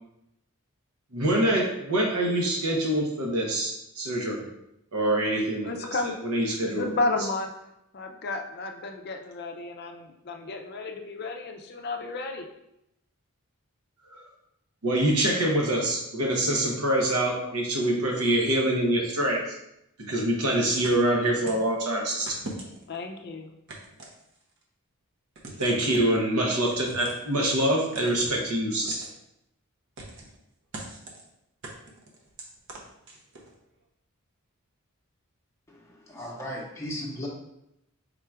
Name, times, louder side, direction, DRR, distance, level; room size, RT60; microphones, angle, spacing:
voice 1, 1.1-4.4 4.9-5.9 6.2-6.9 14.1-14.2 14.8-19.6 20.0-22.4 25.6-29.1, right 1 dB, 85° right, 0 dB, 0.8 m, -25 dB
voice 2, 5.6-6.2 6.6-7.5 7.9-12.5 22.9-23.5, left 2 dB, 45° left, 4 dB, 0.4 m, -32 dB
sound 1, 20.8-21.7 22.3-23.0 23.7-24.6 25.4-25.8 26.7-27.3 27.9-28.4 28.9-29.1 30.0-30.4 30.7-31.2 31.6-33.5, right 2 dB, 55° right, 0.7 m, -42 dB
voice 3, 35.7-37.3, equal, 15° left, -4 dB, 0.7 m, -36 dB
3.7 x 2.4 x 4.4 m, 0.82 s
head